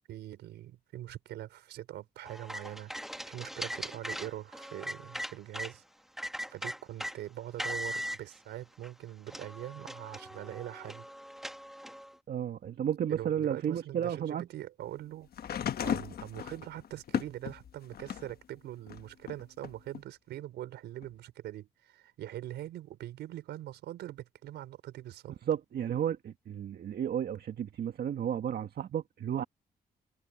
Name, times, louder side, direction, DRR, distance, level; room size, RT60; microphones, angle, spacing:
voice 1, 0.1-2.9 3.3-5.8 6.5-11.1 13.1-15.3 15.8-25.3, right 13 dB, 85° right, 4.9 m, -43 dB
sound 1, 2.3-5.7 6.2-7.2 7.6-8.2 8.8-8.9 9.3-12.1, equal, ahead, 1.9 m, -39 dB
voice 2, 12.3-14.5 25.5-29.4, right 9 dB, 65° right, 1.6 m, -33 dB
sound 2, 15.3-18.4 18.9-20.0 21.0-21.1, left 9 dB, 65° left, 1.3 m, -36 dB
supercardioid pair, 55°, 17 cm